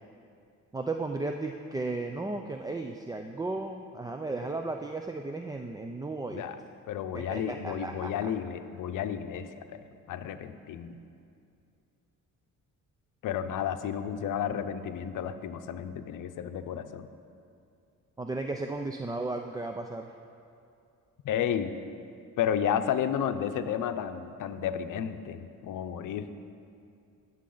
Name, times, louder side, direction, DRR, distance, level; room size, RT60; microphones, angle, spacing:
voice 1, 0.7-6.4 7.1-8.1 18.2-20.1, right 2 dB, 10° right, 4 dB, 0.4 m, -35 dB
voice 2, 6.9-9.8 10.1-11.0 13.2-17.1 21.2-21.7 22.4-26.3, left 9 dB, 70° left, 10 dB, 0.7 m, -32 dB
18.0 x 7.5 x 3.9 m, 2.5 s
cardioid pair, 110°, 33 cm